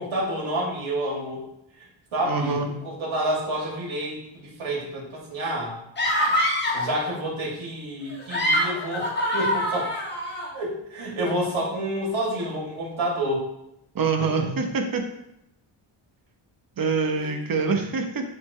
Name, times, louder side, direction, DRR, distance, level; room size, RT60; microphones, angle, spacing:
voice 1, 0.0-1.4 1.8-5.8 6.7-9.9 10.5-13.4 14.2-14.3 17.2-17.3, right 1 dB, 90° right, -4 dB, 2.7 m, -29 dB
voice 2, 2.3-2.7 13.9-15.0 16.8-18.2, right 4 dB, 45° right, 4 dB, 1.0 m, -25 dB
sound 1, 6.0-6.9 8.1-10.5, equal, 25° left, 1.3 m, -24 dB
10.5 x 3.9 x 3.2 m, 0.82 s
wide cardioid pair, 170°, 46 cm